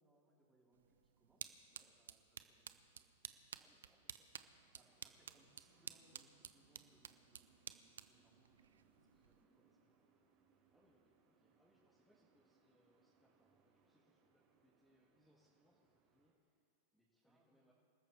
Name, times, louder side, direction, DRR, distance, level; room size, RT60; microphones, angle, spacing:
voice 1, 0.0-3.4 4.7-10.0 17.2-17.7, right 1 dB, 10° right, -4 dB, 4.4 m, -75 dB
sound 1, 0.7-9.4, right 8 dB, 80° right, 0.6 m, -55 dB
voice 2, 3.6-5.0 9.1-9.4 10.7-17.7, equal, 5° left, -6 dB, 2.4 m, -77 dB
sound 2, 4.3-16.3, right 5 dB, 40° right, 4.2 m, -76 dB
27.5 x 13.5 x 3.5 m, 2.5 s
hypercardioid pair, 105°, 0 cm